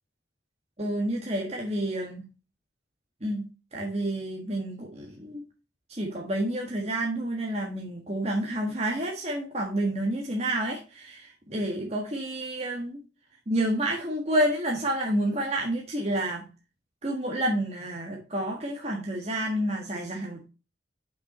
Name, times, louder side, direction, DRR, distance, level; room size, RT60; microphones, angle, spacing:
voice 1, 0.8-2.2 3.2-3.5 3.7-5.4 5.9-13.0 13.5-16.5 17.0-20.5, right 1 dB, 35° right, -1 dB, 1.5 m, -29 dB
6.6 x 5.8 x 4.2 m, 0.33 s
head